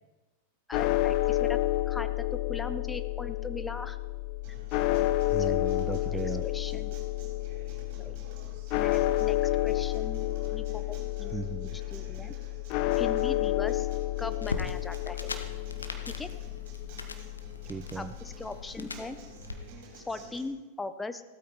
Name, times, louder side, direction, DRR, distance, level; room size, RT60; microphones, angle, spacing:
sound 1, 0.7-19.0, left 16 dB, 45° left, 0.7 m, -30 dB
voice 1, 0.7-1.6 1.9-4.0 5.4-5.7 6.4-6.9 8.0-8.2 8.8-11.4 11.9-12.3 13.0-13.9 14.2-15.3 16.1-16.3 17.9-19.2 19.9-21.2, left 3 dB, 10° left, 10 dB, 1.0 m, -39 dB
Acoustic guitar, 4.4-20.4, right 2 dB, 45° right, 5.3 m, -51 dB
voice 2, 5.3-6.4 11.3-11.8 17.7-18.1, right 5 dB, 15° right, 12 dB, 0.5 m, -36 dB
sound 2, 14.4-19.6, left 3 dB, 75° left, 1.3 m, -41 dB
16.0 x 13.0 x 4.3 m, 1.1 s
figure-of-eight pair, 90°, 0 cm